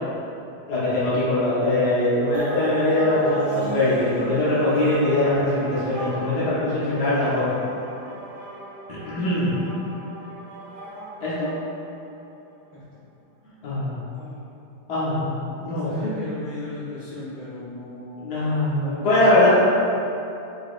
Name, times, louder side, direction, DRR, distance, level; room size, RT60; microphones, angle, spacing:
voice 1, 0.7-7.5 9.0-9.5 11.2-11.5 13.6-14.0 14.9-16.1 18.2-19.5, left 1 dB, 55° left, -10 dB, 1.5 m, -22 dB
sound 1, 2.3-12.1, right 2 dB, 65° right, 1.0 m, -36 dB
voice 2, 14.1-14.6 15.8-18.3 19.4-19.5, left 2 dB, 75° left, -10 dB, 2.3 m, -37 dB
5.0 x 4.2 x 2.4 m, 2.7 s
omnidirectional pair, 2.4 m